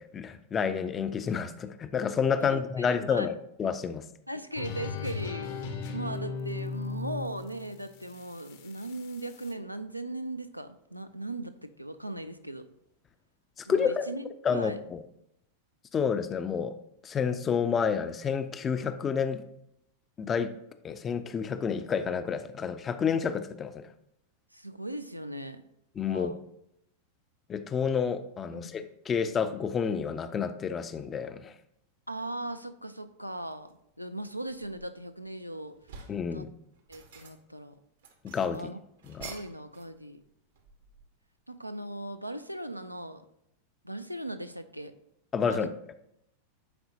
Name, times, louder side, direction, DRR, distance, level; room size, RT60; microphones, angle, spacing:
voice 1, 0.0-4.0 13.6-14.1 14.4-15.0 15.9-16.7 17.0-19.4 20.2-20.6 20.8-23.9 26.0-26.4 27.5-31.5 36.1-36.5 38.2-38.7 39.1-39.3 45.3-45.7, left 6 dB, 25° left, 11 dB, 0.4 m, -29 dB
voice 2, 2.4-3.3 4.3-12.7 13.7-14.2 14.5-14.8 24.5-25.6 26.1-26.4 28.5-28.8 32.1-36.0 36.3-36.5 36.9-37.8 38.5-38.8 39.2-40.2 41.5-43.2 43.8-44.9 45.5-45.7, right 1 dB, 90° right, 9 dB, 0.4 m, -39 dB
sound 1, 4.5-9.5, left 4 dB, 55° left, 0.8 m, -37 dB
sound 2, 33.5-33.8 34.3-35.3 35.6-36.3 36.7-37.6 38.0-40.0 40.2-41.2, right 5 dB, 60° right, 0.8 m, -49 dB
10.0 x 4.2 x 2.7 m, 0.78 s
figure-of-eight pair, 90°, 0 cm